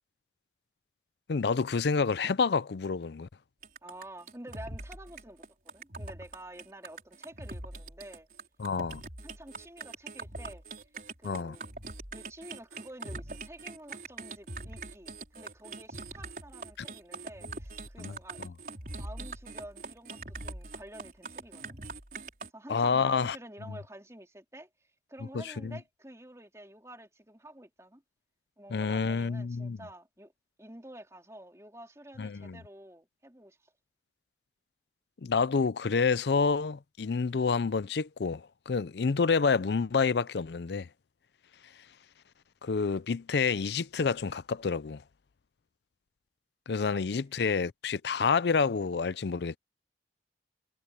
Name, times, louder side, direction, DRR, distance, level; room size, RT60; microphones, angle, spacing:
voice 1, 1.3-3.3 8.6-9.0 11.2-11.6 16.8-16.9 18.0-18.1 22.7-23.4 25.3-25.8 28.7-29.8 32.2-32.6 35.2-40.9 42.6-45.0 46.7-49.6, left 5 dB, 75° left, 0.5 m, -28 dB
sound 1, 3.6-22.5, right 3 dB, 50° right, 5.2 m, -42 dB
voice 2, 3.8-8.3 9.2-10.6 11.2-11.7 12.1-18.5 19.0-21.8 22.5-24.7 25.1-28.0 28.6-30.3 30.6-33.7 47.1-47.3, right 1 dB, 15° right, 3.7 m, -49 dB
head